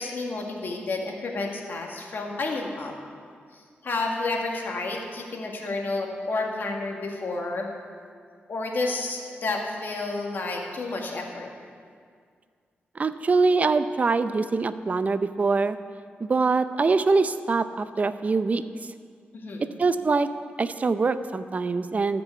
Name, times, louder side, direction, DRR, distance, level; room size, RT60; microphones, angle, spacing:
voice 1, 0.0-2.9 3.5-7.7 8.5-11.5 19.3-19.7, left 3 dB, 60° left, 1 dB, 1.9 m, -30 dB
voice 2, 13.0-15.8 16.2-18.6 19.8-20.3 20.6-22.2, right 4 dB, 40° right, 12 dB, 0.5 m, -23 dB
13.5 x 6.1 x 8.3 m, 2.1 s
cardioid pair, 85°, 4 cm